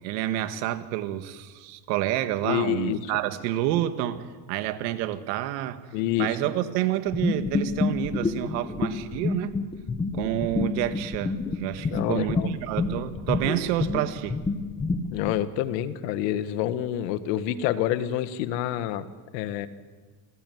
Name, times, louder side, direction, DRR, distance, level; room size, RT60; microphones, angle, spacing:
voice 1, 0.0-5.8 6.2-9.5 10.1-14.4, right 13 dB, 75° right, 11 dB, 1.9 m, -29 dB
voice 2, 2.4-3.0 5.9-6.4 11.9-12.5 15.1-19.1 19.3-19.7, left 12 dB, 75° left, 12 dB, 1.8 m, -27 dB
sound 1, 7.1-15.4, left 3 dB, 10° left, 1.4 m, -28 dB
28.5 x 17.5 x 9.4 m, 1.4 s
cardioid pair, 170°, 50 cm